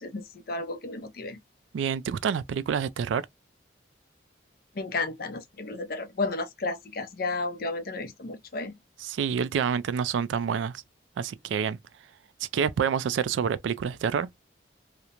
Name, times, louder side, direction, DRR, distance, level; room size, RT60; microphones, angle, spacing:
voice 1, 0.0-1.4 4.7-8.8, left 3 dB, 50° left, 0.5 m, -33 dB
voice 2, 1.7-3.3 9.0-10.8 11.2-11.8 12.5-14.3, right 7 dB, 85° right, 0.3 m, -27 dB
2.9 x 2.0 x 2.4 m
head